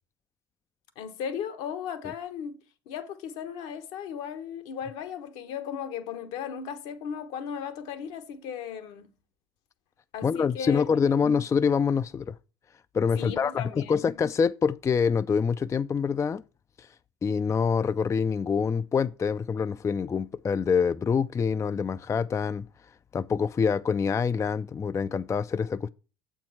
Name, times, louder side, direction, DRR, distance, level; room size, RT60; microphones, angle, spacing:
voice 1, 1.0-2.6 2.9-9.1 10.1-11.2 13.1-14.2, left 8 dB, 70° left, 1.2 m, -36 dB
voice 2, 10.2-12.3 12.9-16.4 16.8-16.9 17.2-22.7 23.1-25.9, left 6 dB, 25° left, 0.4 m, -26 dB
7.6 x 4.6 x 5.6 m
hypercardioid pair, 70°, 12 cm